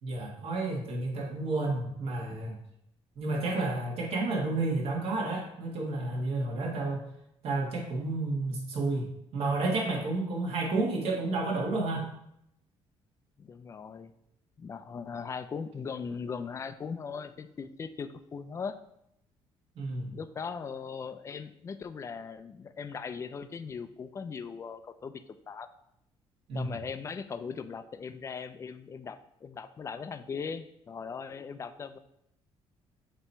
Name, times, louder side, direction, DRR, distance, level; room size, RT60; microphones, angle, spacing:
voice 1, 0.0-2.6 3.2-7.0 7.4-12.1 19.8-20.1 26.5-26.7, right 2 dB, 65° right, -1 dB, 1.8 m, -31 dB
voice 2, 13.4-14.1 14.6-18.8 20.1-25.7 26.5-32.0, left 5 dB, 30° left, 11 dB, 0.4 m, -39 dB
8.1 x 3.0 x 4.4 m, 0.78 s
cardioid pair, 130°, 11 cm